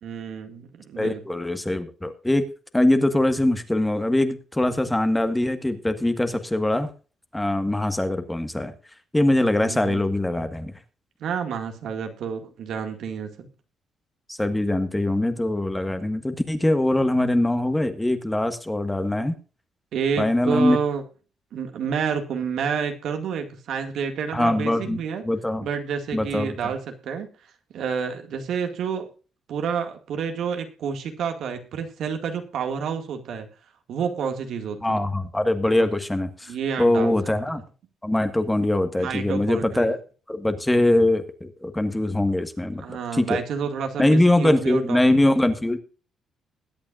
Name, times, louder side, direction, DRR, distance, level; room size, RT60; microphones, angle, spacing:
voice 1, 0.0-1.2 9.6-10.0 11.2-13.5 19.9-21.0 21.5-25.2 25.6-27.3 27.7-29.1 29.5-33.5 33.9-35.0 36.5-37.2 39.0-40.0 42.8-45.2, right 6 dB, 75° right, 6 dB, 2.1 m, -29 dB
voice 2, 1.0-2.4 2.7-6.9 7.3-8.7 9.1-10.7 14.3-19.3 20.2-20.8 24.3-25.7 26.1-26.5 34.8-37.6 38.0-40.0 40.3-42.8 43.1-43.4 44.0-45.8, left 1 dB, 10° left, 9 dB, 1.6 m, -22 dB
21.0 x 8.6 x 2.5 m, 0.37 s
cardioid pair, 90°, 0 cm